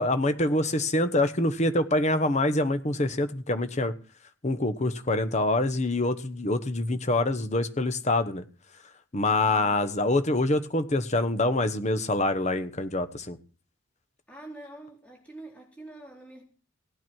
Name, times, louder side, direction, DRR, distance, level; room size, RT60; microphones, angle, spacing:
voice 1, 0.0-3.9 4.4-8.4 9.1-13.4, left 2 dB, 35° left, 10 dB, 1.1 m, -25 dB
voice 2, 9.4-10.1 11.3-11.5 14.3-16.4, right 1 dB, 5° left, -2 dB, 4.0 m, -46 dB
17.0 x 9.3 x 4.6 m, 0.38 s
head